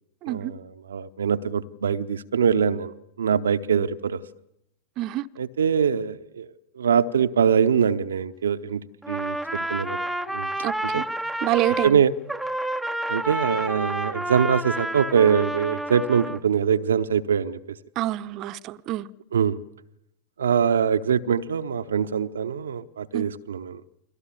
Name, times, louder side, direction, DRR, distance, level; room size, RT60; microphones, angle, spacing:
voice 1, 0.3-2.9 3.2-4.2 5.4-6.5 6.8-10.0 10.3-10.5 10.8-11.0 11.8-12.1 13.1-17.8 19.3-19.6 20.4-23.8, right 7 dB, 65° right, 0.9 m, -23 dB
Trumpet, 9.0-12.0 12.3-16.4, right 1 dB, ahead, 1.0 m, -29 dB
voice 2, 10.6-11.0 11.4-12.0 18.0-19.1 23.1-23.3, right 15 dB, 40° right, 0.9 m, -27 dB
30.0 x 22.5 x 7.1 m
figure-of-eight pair, 90°, 0 cm